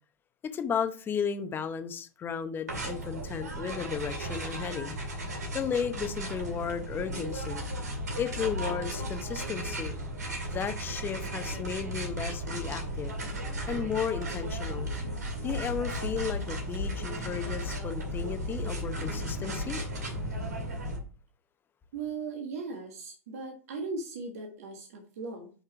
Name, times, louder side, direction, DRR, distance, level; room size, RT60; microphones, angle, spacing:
voice 1, 0.4-4.9 5.5-7.6 8.2-10.0 10.5-13.2 13.7-14.9 15.4-19.8, left 7 dB, 25° left, 0.8 m, -34 dB
sound 1, 2.7-21.0, equal, 80° right, 2.0 m, -35 dB
voice 2, 21.9-25.5, right 4 dB, 65° right, 1.6 m, -38 dB
6.0 x 5.4 x 4.6 m
figure-of-eight pair, 95°, 9 cm